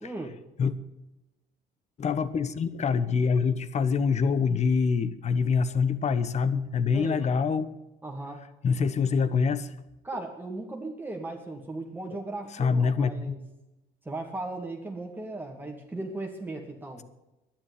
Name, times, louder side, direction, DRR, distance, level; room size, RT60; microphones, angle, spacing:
voice 1, 0.0-0.4 6.9-7.2 8.0-8.4 10.0-13.4 14.0-17.0, right 2 dB, 10° right, 0 dB, 2.3 m, -37 dB
voice 2, 2.0-7.7 8.6-9.7 12.5-13.4, left 5 dB, 40° left, 14 dB, 1.1 m, -25 dB
11.5 x 10.5 x 9.6 m, 0.97 s
cardioid pair, 110°, 17 cm